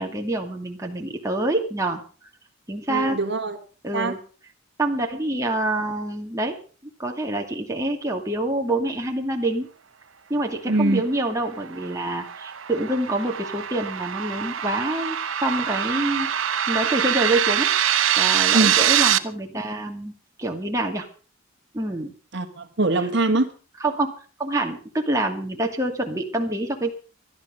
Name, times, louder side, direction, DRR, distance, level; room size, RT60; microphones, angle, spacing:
voice 1, 0.0-2.0 2.7-3.2 3.8-4.2 4.8-6.6 7.0-9.7 10.3-16.3 16.7-17.7 18.2-20.1 20.4-21.0 21.7-22.1 23.8-24.1 24.4-26.9, right 1 dB, 15° right, 1 dB, 2.5 m, -26 dB
voice 2, 2.9-3.6 3.9-4.2 10.7-11.0 18.5-18.8 22.3-23.5, right 2 dB, 65° right, 6 dB, 1.6 m, -22 dB
sound 1, 11.5-19.2, right 10 dB, 85° right, 1.0 m, -23 dB
18.0 x 12.0 x 5.3 m, 0.39 s
head